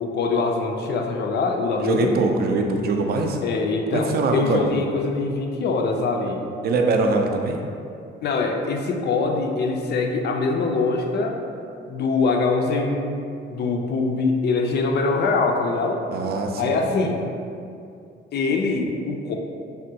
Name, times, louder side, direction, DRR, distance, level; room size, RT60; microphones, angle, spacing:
voice 1, 0.0-2.2 3.4-6.4 8.2-11.4 11.9-13.2 13.5-16.0 16.6-17.2 18.3-19.3, left 3 dB, 55° left, 2 dB, 0.4 m, -23 dB
voice 2, 1.8-3.4 3.9-4.7 6.6-7.6 16.1-16.8, right 3 dB, 50° right, 2 dB, 0.4 m, -22 dB
3.5 x 2.2 x 2.7 m, 2.5 s
cardioid pair, 90°, 20 cm